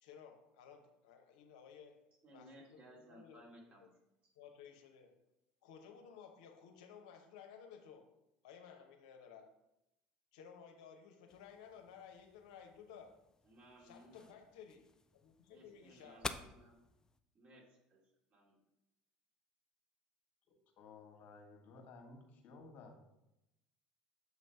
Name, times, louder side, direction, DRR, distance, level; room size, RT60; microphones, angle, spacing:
voice 1, 0.0-2.0 2.3-3.9 4.3-5.2 5.6-8.1 8.4-9.6 10.3-13.2 13.8-16.4, left 7 dB, 75° left, 4 dB, 0.8 m, -57 dB
voice 2, 2.2-3.9 13.4-14.3 15.5-16.7 17.3-18.0 18.3-18.6, right 1 dB, 40° right, -3 dB, 2.5 m, -60 dB
sound 1, 11.3-17.2, left 3 dB, 20° left, 0.5 m, -51 dB
voice 3, 20.5-23.1, left 3 dB, 55° left, 2 dB, 1.4 m, -56 dB
7.0 x 3.2 x 5.4 m, 0.88 s
hypercardioid pair, 75°, 4 cm